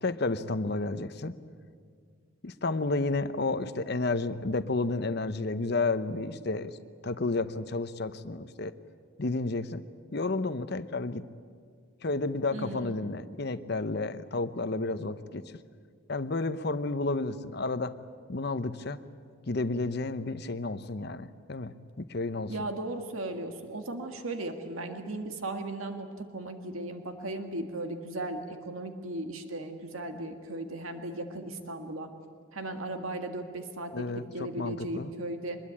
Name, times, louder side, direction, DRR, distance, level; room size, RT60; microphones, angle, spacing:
voice 1, 0.0-1.4 2.4-6.7 7.0-8.7 9.2-9.8 10.1-11.2 12.0-15.4 16.1-17.9 18.3-19.0 19.5-22.5 33.9-35.1, left 3 dB, 50° left, 12 dB, 0.8 m, -31 dB
voice 2, 12.5-13.0 22.5-32.1 32.5-35.6, right 2 dB, 85° right, 6 dB, 1.9 m, -37 dB
24.5 x 21.0 x 8.7 m, 2.1 s
head